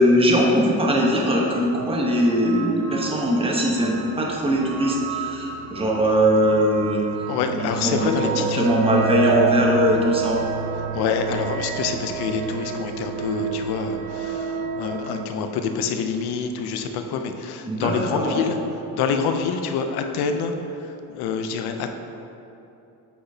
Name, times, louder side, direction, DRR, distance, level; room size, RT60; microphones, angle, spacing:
voice 1, 0.0-7.0 7.5-10.4 17.6-18.4, equal, 15° right, -1 dB, 1.0 m, -21 dB
sound 1, 1.4-15.3, right 7 dB, 55° right, 0.5 m, -30 dB
voice 2, 7.3-8.7 10.9-18.6 18.9-20.6 20.8-21.9, left 6 dB, 85° left, 6 dB, 0.6 m, -26 dB
8.4 x 5.9 x 2.8 m, 2.9 s
cardioid pair, 95°, 37 cm